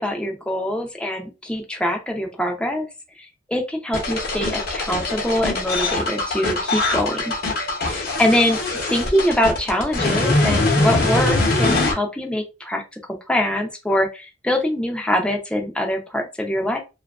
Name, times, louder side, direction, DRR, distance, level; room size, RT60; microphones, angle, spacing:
voice 1, 0.0-2.9 3.5-7.3 7.8-8.6 8.9-12.8 13.3-16.8, left 1 dB, 5° left, 2 dB, 0.5 m, -23 dB
sound 1, 3.9-11.9, left 2 dB, 50° left, 0.8 m, -22 dB
2.6 x 2.3 x 2.3 m, 0.27 s
head